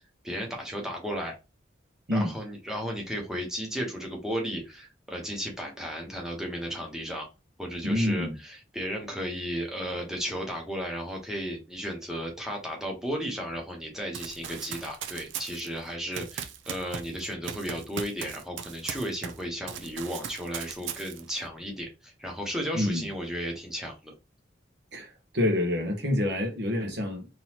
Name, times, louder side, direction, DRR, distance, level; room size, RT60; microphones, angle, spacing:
voice 1, 0.2-1.3 2.1-7.3 7.6-24.1, equal, 5° right, 1.0 m, -34 dB
voice 2, 7.8-8.4 22.7-23.1 24.9-27.3, left 1 dB, 65° right, 1.1 m, -27 dB
Run, 14.1-19.4 19.7-21.4, right 8 dB, 85° right, 0.5 m, -38 dB
3.9 x 3.0 x 2.9 m
head